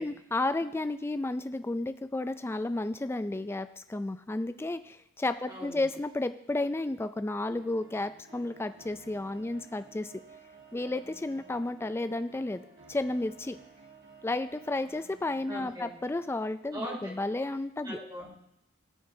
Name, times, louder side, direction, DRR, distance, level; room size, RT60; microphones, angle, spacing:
voice 1, 0.0-10.1 10.7-12.6 12.9-13.6 14.2-18.0, left 2 dB, 10° left, 11 dB, 0.3 m, -32 dB
voice 2, 5.5-5.9 15.5-15.9 16.7-17.1 17.8-18.3, equal, 20° right, -4 dB, 2.8 m, -40 dB
sound 1, 7.5-15.5, right 4 dB, 55° right, 2.2 m, -54 dB
16.5 x 6.6 x 2.7 m, 0.79 s
head